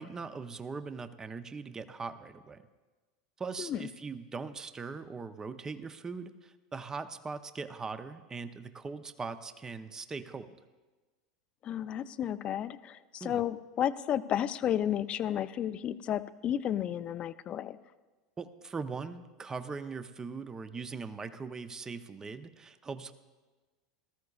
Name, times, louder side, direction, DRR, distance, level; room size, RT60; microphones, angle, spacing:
voice 1, 0.0-2.6 3.4-10.6 13.2-13.4 18.4-23.1, right 4 dB, 20° right, 11 dB, 0.6 m, -40 dB
voice 2, 3.6-3.9 11.6-17.8, left 10 dB, 40° left, 14 dB, 0.5 m, -32 dB
19.0 x 13.5 x 2.4 m, 1.3 s
hypercardioid pair, 90°, 3 cm